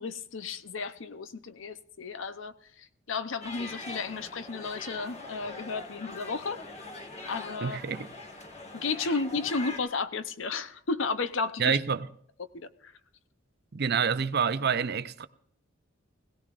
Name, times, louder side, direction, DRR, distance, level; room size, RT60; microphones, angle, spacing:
voice 1, 0.0-6.6 7.2-7.8 8.7-11.8 12.5-12.9, left 4 dB, 70° left, 0.7 m, -33 dB
sound 1, 3.4-9.8, left 2 dB, 35° left, 1.7 m, -42 dB
voice 2, 7.6-8.1 11.6-12.1 13.7-15.3, right 6 dB, 55° right, 0.6 m, -27 dB
21.0 x 16.5 x 2.5 m
head